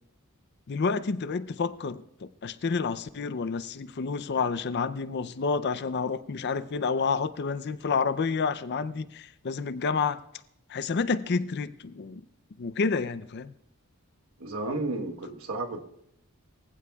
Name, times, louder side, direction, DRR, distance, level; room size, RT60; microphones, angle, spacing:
voice 1, 0.7-10.2 10.7-12.2 12.6-13.5, left 4 dB, 50° left, 0.5 m, -29 dB
voice 2, 14.4-15.8, right 2 dB, 70° right, 1.2 m, -32 dB
23.5 x 15.0 x 2.3 m
head